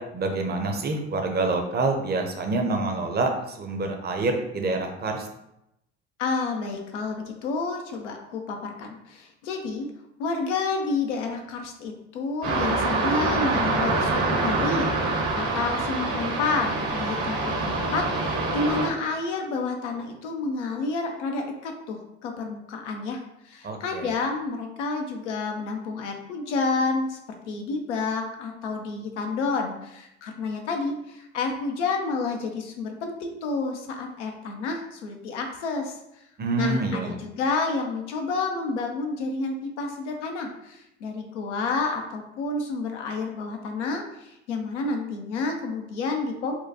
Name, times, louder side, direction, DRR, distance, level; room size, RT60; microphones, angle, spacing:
voice 1, 0.1-5.3 23.6-24.1 36.4-37.2, right 3 dB, 30° right, 4 dB, 0.6 m, -27 dB
voice 2, 6.2-9.9 10.2-27.2 27.5-35.9 36.6-46.6, left 4 dB, 85° left, 3 dB, 0.6 m, -30 dB
sound 1, 12.4-18.9, right 3 dB, 70° right, 1.2 m, -25 dB
4.4 x 2.2 x 2.8 m, 0.84 s
hypercardioid pair, 60°, 35 cm